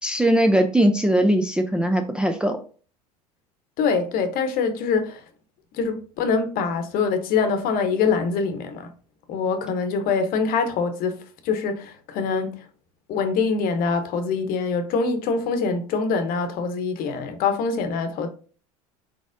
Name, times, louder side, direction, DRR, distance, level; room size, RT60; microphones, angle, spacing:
voice 1, 0.0-2.6, right 1 dB, 5° right, 0.4 m, -20 dB
voice 2, 3.8-5.2 5.7-8.9 9.3-12.7 13.1-18.3, left 5 dB, 50° left, 0.9 m, -24 dB
4.6 x 4.1 x 2.6 m
hypercardioid pair, 80°, 20 cm